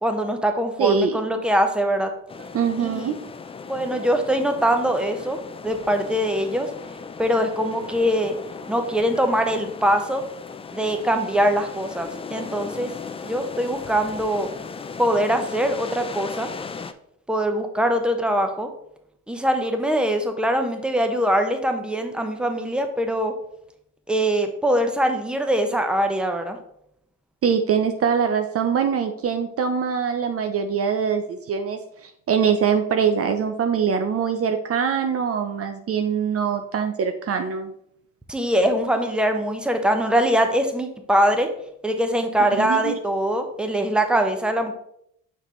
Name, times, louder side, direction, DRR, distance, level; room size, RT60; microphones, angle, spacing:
voice 1, 0.0-2.1 2.8-3.1 3.7-6.7 7.2-8.3 8.7-10.2 10.7-12.9 13.2-14.5 15.0-16.5 17.3-18.7 19.3-23.3 24.1-26.6 38.3-41.5 41.8-44.7, equal, 5° right, 6 dB, 1.0 m, -22 dB
voice 2, 0.8-1.2 2.5-3.2 27.4-37.7 42.6-43.0, right 7 dB, 45° right, 7 dB, 0.6 m, -23 dB
sound 1, 2.3-16.9, left 5 dB, 20° left, 0.4 m, -37 dB
6.4 x 5.4 x 3.2 m, 0.73 s
supercardioid pair, 75°, 32 cm